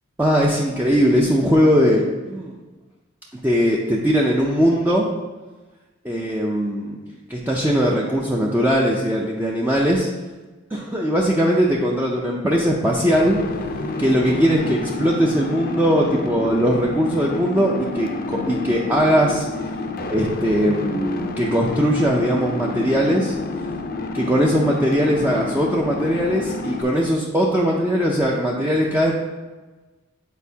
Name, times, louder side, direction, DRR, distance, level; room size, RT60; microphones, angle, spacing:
voice 1, 0.2-2.6 3.4-5.1 6.0-7.0 7.3-10.1 10.7-13.4 14.0-19.5 20.1-23.4 24.1-29.1, equal, 10° right, -3 dB, 0.5 m, -20 dB
sound 1, 13.1-26.8, left 3 dB, 45° left, 0.5 m, -29 dB
8.2 x 4.4 x 2.8 m, 1.2 s
head